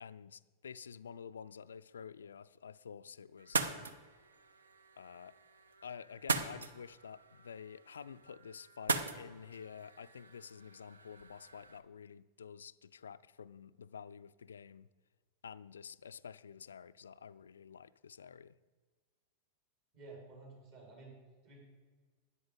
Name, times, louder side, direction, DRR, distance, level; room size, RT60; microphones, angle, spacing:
voice 1, 0.0-3.8 5.0-5.3 5.8-14.9 15.4-18.6, left 7 dB, 70° left, 0.3 m, -50 dB
sound 1, 3.4-11.8, right 4 dB, 70° right, 0.7 m, -40 dB
voice 2, 19.9-21.1 21.4-21.6, right 3 dB, 50° right, 4.9 m, -52 dB
13.0 x 9.8 x 5.3 m
figure-of-eight pair, 90°, 0 cm